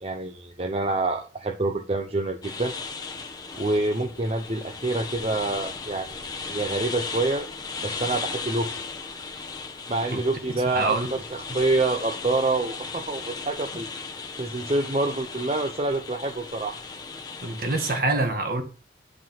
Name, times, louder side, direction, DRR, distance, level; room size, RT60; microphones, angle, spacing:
voice 1, 0.0-2.7 3.5-7.5 7.8-8.8 9.9-13.9 14.4-16.8, right 2 dB, 30° right, 0.7 m, -27 dB
sound 1, 2.4-18.0, left 4 dB, 20° left, 0.9 m, -36 dB
voice 2, 10.7-11.2 17.4-18.6, right 2 dB, 50° right, 1.7 m, -25 dB
9.5 x 5.0 x 5.9 m
head